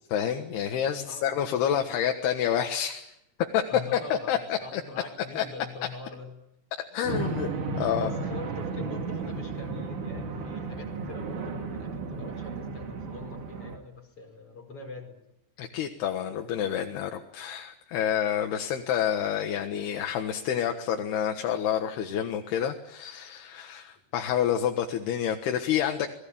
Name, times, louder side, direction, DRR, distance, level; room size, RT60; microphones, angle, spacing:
voice 1, 0.1-3.1 3.5-3.6 3.9-4.8 5.4-5.5 6.9-7.5 7.8-8.1 15.6-26.1, left 9 dB, 75° left, 4 dB, 3.5 m, -28 dB
voice 2, 1.0-1.9 3.7-6.3 8.0-15.2 18.7-18.9, left 3 dB, 35° left, 3 dB, 5.6 m, -44 dB
sound 1, 7.0-13.8, right 4 dB, 55° right, 3.5 m, -34 dB
27.5 x 20.0 x 8.7 m, 0.84 s
omnidirectional pair, 4.7 m